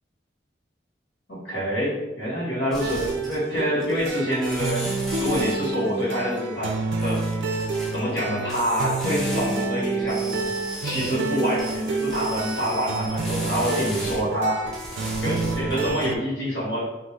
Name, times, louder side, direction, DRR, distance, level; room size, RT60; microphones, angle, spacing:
voice 1, 1.3-4.9 5.2-6.7 7.0-7.5 7.9-10.5 10.8-14.6 15.2-16.8, equal, 75° left, -7 dB, 1.5 m, -26 dB
sound 1, 2.7-3.6 3.8-5.7 6.9-7.9 8.5-9.6 10.0-14.2 14.6-15.9, equal, ahead, 0.4 m, -37 dB
sound 2, 2.8-16.2, right 3 dB, 85° right, 0.4 m, -28 dB
2.7 x 2.5 x 3.2 m, 1.0 s
head